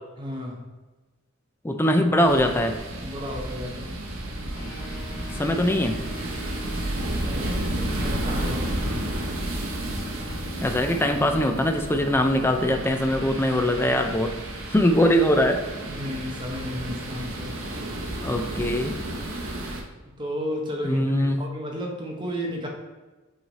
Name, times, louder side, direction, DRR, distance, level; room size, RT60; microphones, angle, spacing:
voice 1, 0.2-0.6 3.0-4.0 7.2-9.0 15.8-17.6 20.1-22.7, left 1 dB, 20° right, 0 dB, 0.9 m, -33 dB
voice 2, 1.6-2.8 5.3-6.0 10.6-14.3 14.7-15.6 18.2-19.0 20.8-21.4, equal, 10° left, 5 dB, 0.4 m, -22 dB
sound 1, 2.2-19.8, right 1 dB, 75° right, 0.9 m, -32 dB
sound 2, 4.6-14.3, equal, 65° left, 1.0 m, -43 dB
7.8 x 3.2 x 4.1 m, 1.2 s
head